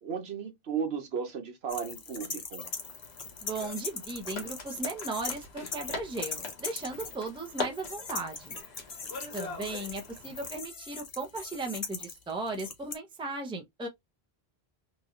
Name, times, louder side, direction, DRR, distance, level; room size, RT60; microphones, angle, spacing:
voice 1, 0.0-2.7, right 6 dB, 75° right, 1.1 m, -35 dB
sound 1, 1.7-5.4 5.7-12.9, left 5 dB, 40° left, 0.7 m, -40 dB
sound 2, 2.7-10.5, left 4 dB, 85° left, 1.2 m, -43 dB
voice 2, 3.4-8.6 9.3-13.9, right 3 dB, 5° right, 0.5 m, -37 dB
3.0 x 2.7 x 2.4 m
omnidirectional pair, 1.1 m